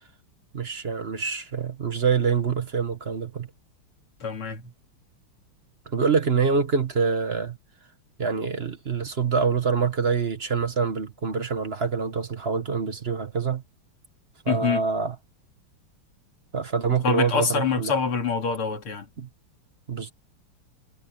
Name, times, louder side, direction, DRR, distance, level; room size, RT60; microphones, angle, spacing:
voice 1, 0.5-3.5 5.9-7.6 8.2-13.6 14.4-15.1 16.5-17.9 19.2-19.3 19.9-20.1, right 5 dB, 35° right, 1.3 m, -25 dB
voice 2, 4.2-4.7 14.5-14.8 16.9-19.1, left 5 dB, 85° left, 3.6 m, -26 dB
omnidirectional pair, 2.3 m